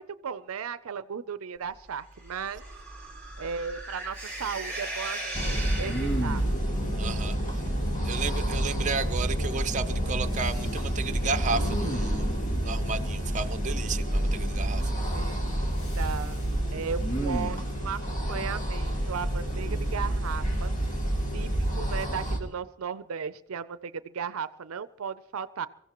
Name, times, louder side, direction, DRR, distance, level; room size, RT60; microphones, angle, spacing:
voice 1, 0.0-2.6 3.4-6.4 15.1-15.6 16.0-16.4 16.7-20.7 21.3-25.7, right 6 dB, 80° right, 14 dB, 0.5 m, -36 dB
sound 1, 2.2-6.5, right 2 dB, 10° left, 5.3 m, -38 dB
Respiratory sounds, 2.3-2.8 3.1-3.8 4.2-5.2 5.9-6.7 10.3-10.9 11.5-12.5 14.1-14.7 15.8-16.5 17.0-17.7 19.5-20.5 20.9-21.1, right 1 dB, 60° left, 2.3 m, -36 dB
sound 2, 5.3-22.4, right 1 dB, 40° left, 2.6 m, -29 dB
voice 2, 7.0-7.4 8.0-12.4 12.6-14.8, right 4 dB, 35° right, 9 dB, 0.7 m, -33 dB
23.5 x 15.5 x 3.0 m, 0.81 s
head